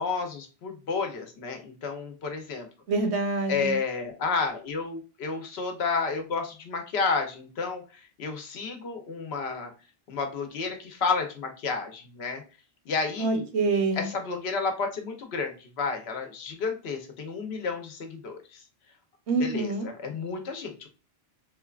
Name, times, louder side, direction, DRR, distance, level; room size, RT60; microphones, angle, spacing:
voice 1, 0.0-2.7 3.5-9.7 10.1-12.4 12.9-13.5 13.9-18.6 19.4-20.9, left 4 dB, 75° left, 4 dB, 1.0 m, -31 dB
voice 2, 2.9-3.8 13.2-14.1 19.3-19.9, right 3 dB, 85° right, 6 dB, 1.0 m, -26 dB
4.1 x 2.2 x 2.3 m, 0.35 s
omnidirectional pair, 1.1 m